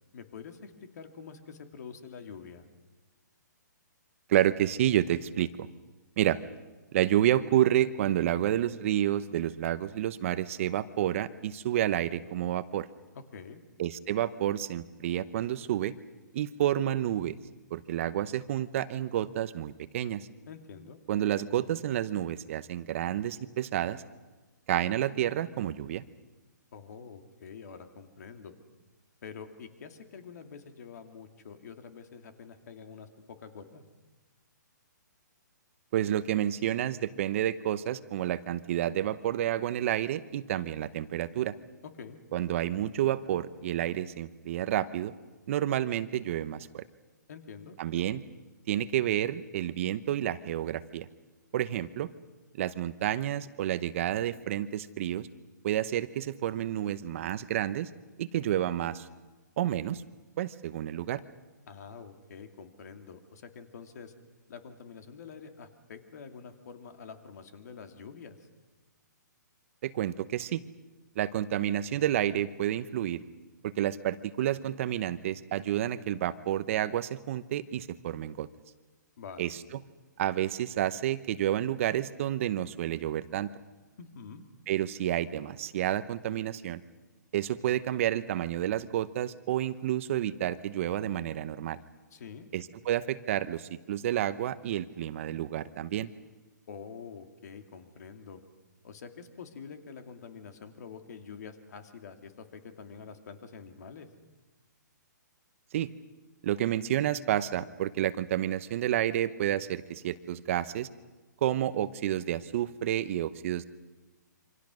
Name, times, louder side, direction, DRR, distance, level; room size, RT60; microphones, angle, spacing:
voice 1, 0.1-2.6 13.1-13.6 20.5-21.0 26.7-28.5 29.2-33.9 42.0-42.2 47.3-47.8 61.7-64.1 64.5-68.4 79.2-79.4 84.0-84.4 92.1-92.5 96.7-98.4 98.8-104.1, left 6 dB, 60° left, 6 dB, 2.5 m, -46 dB
voice 2, 4.3-5.7 6.2-6.4 6.9-12.9 13.8-15.9 16.3-17.4 17.7-20.3 21.1-24.0 24.7-26.0 35.9-41.5 42.3-45.1 45.5-46.8 47.8-48.2 48.7-51.1 51.5-52.1 52.6-55.3 55.6-57.9 58.2-59.0 59.6-60.0 60.4-61.2 69.8-70.6 71.2-73.2 73.6-78.5 79.4-79.6 80.2-83.5 84.7-86.8 87.3-91.8 92.5-96.1 105.7-105.9 106.4-110.9 111.4-113.6, right 12 dB, 45° right, 14 dB, 0.9 m, -30 dB
27.5 x 25.0 x 6.3 m, 1.2 s
hypercardioid pair, 150°, 10 cm